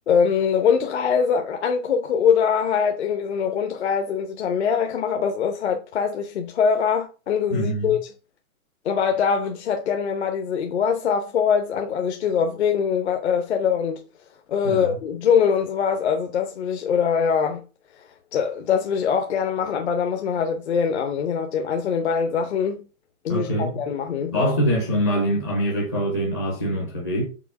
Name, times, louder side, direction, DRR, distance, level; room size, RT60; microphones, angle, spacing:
voice 1, 0.1-8.0 8.8-14.0 14.5-17.6 18.0-22.8 23.2-24.5, left 7 dB, 50° left, 0.8 m, -23 dB
voice 2, 7.5-8.0 14.6-15.0 23.3-23.8 24.3-27.3, equal, 15° left, 0.5 m, -24 dB
6.0 x 4.0 x 4.7 m
hypercardioid pair, 170°, 43 cm